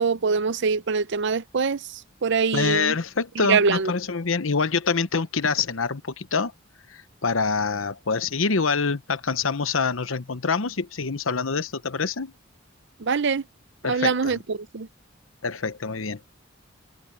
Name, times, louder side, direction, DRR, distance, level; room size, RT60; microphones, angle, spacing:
voice 1, 0.0-2.9 3.5-3.9 13.0-13.4 13.9-14.9, right 5 dB, 60° right, 0.7 m, -24 dB
voice 2, 2.5-6.5 6.9-12.3 13.8-14.4 15.4-16.2, left 4 dB, 85° left, 1.0 m, -25 dB
head